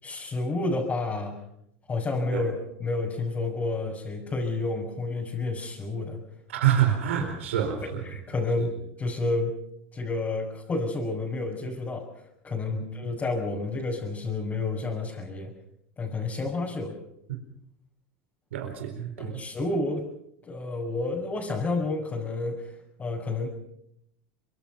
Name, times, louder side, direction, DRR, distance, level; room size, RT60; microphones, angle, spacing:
voice 1, 0.0-1.4 1.9-2.5 2.8-6.2 7.8-9.6 9.9-15.5 16.0-17.0 19.2-20.0 20.4-22.7 23.0-23.5, left 3 dB, 25° left, -4 dB, 6.4 m, -30 dB
voice 2, 6.5-8.0 8.6-8.7 12.7-12.8 17.3-17.4 18.5-19.4, right 10 dB, 85° right, 4 dB, 4.3 m, -27 dB
25.0 x 23.0 x 5.8 m, 0.75 s
supercardioid pair, 100°, 7 cm